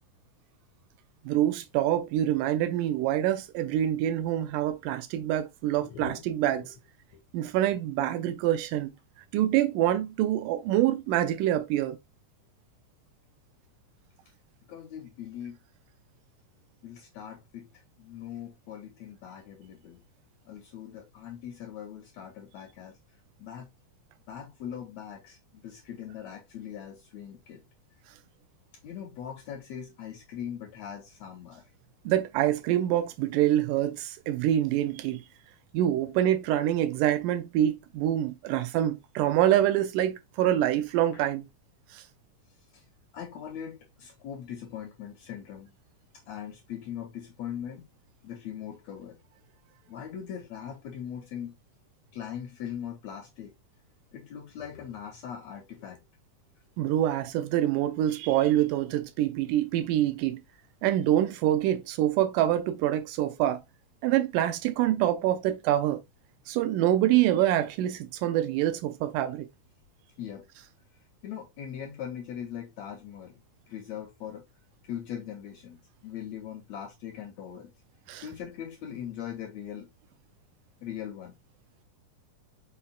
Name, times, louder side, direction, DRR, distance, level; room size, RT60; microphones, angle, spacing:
voice 1, 1.3-6.6 7.3-8.9 9.3-12.0 32.1-35.2 35.7-41.5 56.8-60.4 60.8-63.6 64.0-66.0 66.5-69.5 78.1-78.2, right 12 dB, 85° right, 2.2 m, -26 dB
voice 2, 5.8-6.7 14.7-15.6 16.8-17.7 18.0-20.0 20.5-23.0 23.4-23.7 24.3-27.6 28.8-31.6 41.1-41.2 42.7-42.8 43.1-45.7 46.3-47.8 48.2-49.2 49.9-51.5 52.1-53.5 54.1-56.0 70.2-70.5 71.2-73.3 73.7-74.4 74.8-77.7 78.2-79.9 80.8-81.3, left 9 dB, 75° left, 1.6 m, -40 dB
5.6 x 4.2 x 2.2 m
omnidirectional pair, 3.7 m